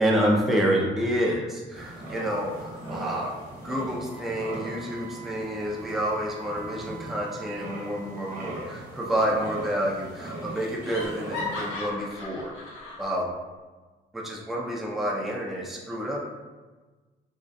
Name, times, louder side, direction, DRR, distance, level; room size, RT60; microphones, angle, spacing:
voice 1, 0.0-3.4 3.6-12.5 13.0-13.3 14.1-16.3, equal, ahead, -2 dB, 0.4 m, -28 dB
sound 1, 1.7-11.7, right 1 dB, 45° right, 1.0 m, -40 dB
Wind instrument woodwind instrument, 4.0-8.6, right 8 dB, 85° right, 0.5 m, -46 dB
Laughter, 9.2-9.8 10.0-10.1 10.5-13.0, left 3 dB, 85° left, 0.6 m, -37 dB
2.6 x 2.2 x 2.2 m, 1.3 s
cardioid pair, 90°, 20 cm